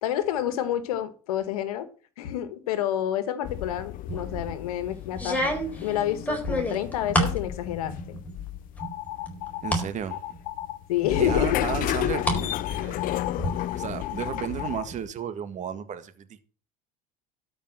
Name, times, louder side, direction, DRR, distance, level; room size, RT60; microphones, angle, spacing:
voice 1, 0.0-1.9 2.2-8.2 10.9-11.7, left 11 dB, 85° left, 1.5 m, -28 dB
sound 1, 3.4-15.1, left 14 dB, 50° left, 0.6 m, -33 dB
sound 2, 4.1-4.5 5.1-7.4 7.8-8.4 8.8-9.9 10.3-10.4 11.3-12.4 12.7-13.5, equal, 10° left, 4.2 m, -28 dB
sound 3, 8.8-9.7 10.1-10.8 11.1-11.8 12.1-14.9, left 15 dB, 65° left, 1.7 m, -35 dB
voice 2, 9.6-10.2 11.2-13.2 13.7-16.4, right 9 dB, 40° right, 1.7 m, -34 dB
12.5 x 5.5 x 7.4 m
supercardioid pair, 90°, 18 cm